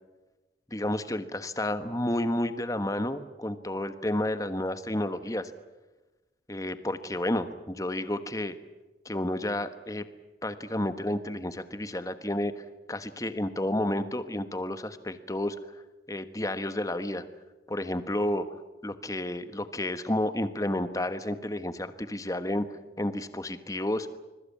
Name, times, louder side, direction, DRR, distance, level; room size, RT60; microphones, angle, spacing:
voice 1, 0.7-5.5 6.5-8.6 9.0-10.0 10.4-15.6 16.1-17.3 17.7-18.4 18.8-24.1, left 1 dB, 20° left, 11 dB, 1.3 m, -31 dB
26.0 x 21.5 x 8.6 m, 1.1 s
head